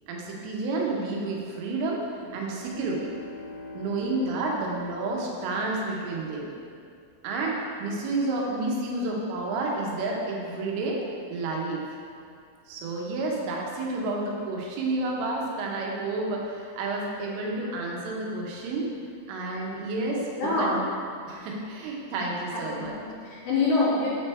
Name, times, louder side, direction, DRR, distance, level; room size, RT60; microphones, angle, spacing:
voice 1, 0.1-2.0 2.3-3.1 3.8-6.5 7.2-11.0 11.3-11.8 12.7-18.9 19.3-20.3 20.6-20.8 21.3-23.0, right 2 dB, 85° right, -2 dB, 3.4 m, -30 dB
sound 1, 2.1-6.1, left 2 dB, 65° right, 3.4 m, -44 dB
voice 2, 20.4-20.7 22.5-24.1, left 3 dB, 70° left, -7 dB, 2.9 m, -26 dB
9.1 x 4.3 x 3.4 m, 2.3 s
omnidirectional pair, 5.6 m